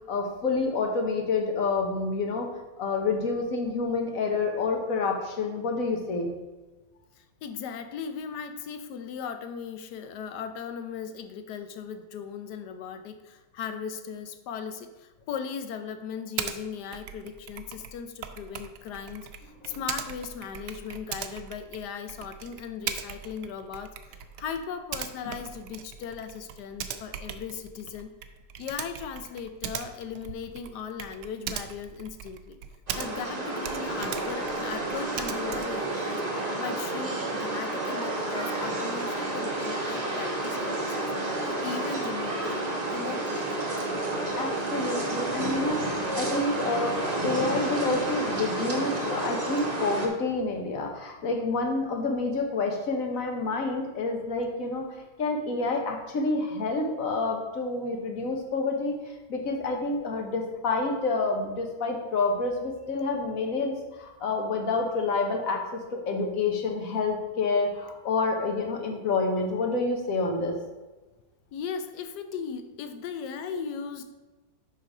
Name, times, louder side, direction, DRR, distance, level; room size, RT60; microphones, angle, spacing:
voice 1, 0.1-2.5 2.8-6.3 19.6-19.8 44.4-54.9 55.2-58.9 59.3-70.6, left 3 dB, 55° left, 3 dB, 1.3 m, -28 dB
voice 2, 7.2-19.3 19.6-28.1 28.6-32.6 33.0-41.1 41.4-43.9 71.5-74.0, left 7 dB, 70° left, 9 dB, 1.1 m, -38 dB
Typing, 16.4-16.6 16.9-33.3 33.6-35.8, right 9 dB, 85° right, 1.3 m, -39 dB
sound 1, 32.9-50.1, right 2 dB, 25° right, 1.0 m, -30 dB
5.9 x 5.7 x 4.8 m, 1.2 s
omnidirectional pair, 1.9 m